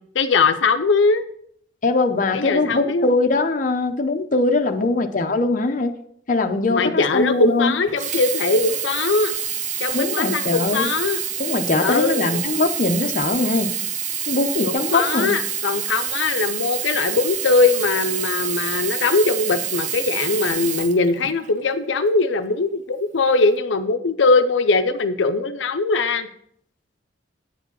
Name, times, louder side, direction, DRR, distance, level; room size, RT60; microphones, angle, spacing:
voice 1, 0.1-1.2 2.3-3.1 6.7-9.3 9.8-11.2 11.8-12.4 14.6-26.3, left 3 dB, 85° left, 8 dB, 0.6 m, -21 dB
voice 2, 1.8-5.9 6.3-7.8 9.9-10.9 11.4-13.7 14.3-15.3, left 3 dB, 45° left, 5 dB, 0.7 m, -21 dB
Sink (filling or washing), 7.9-21.6 22.4-22.5, right 8 dB, 40° right, 0.7 m, -27 dB
9.0 x 5.0 x 6.8 m, 0.68 s
head